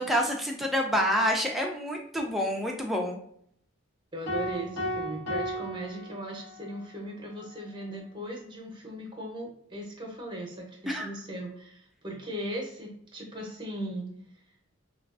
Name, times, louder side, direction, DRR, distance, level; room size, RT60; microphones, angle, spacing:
voice 1, 0.0-3.2 10.9-11.1, equal, ahead, 0 dB, 0.3 m, -28 dB
voice 2, 4.1-14.1, right 1 dB, 25° right, -1 dB, 0.8 m, -38 dB
sound 1, 4.3-6.7, equal, 75° left, 1.0 m, -34 dB
3.4 x 2.3 x 2.4 m, 0.67 s
head